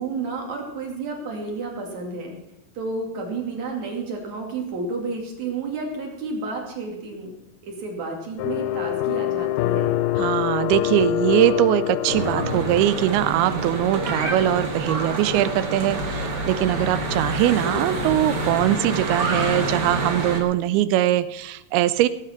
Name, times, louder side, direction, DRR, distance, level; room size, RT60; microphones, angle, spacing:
voice 1, 0.0-2.4 2.7-7.3 7.6-10.0 17.6-18.1, right 3 dB, 50° right, 1 dB, 3.4 m, -31 dB
sound 1, 8.4-13.6, left 13 dB, 80° left, 2.0 m, -25 dB
voice 2, 10.2-22.1, right 13 dB, 90° right, 15 dB, 2.6 m, -21 dB
Church bell / Traffic noise roadway noise, 12.1-20.4, right 1 dB, 65° right, 1.0 m, -27 dB
17.0 x 8.1 x 5.8 m, 0.87 s
omnidirectional pair, 4.4 m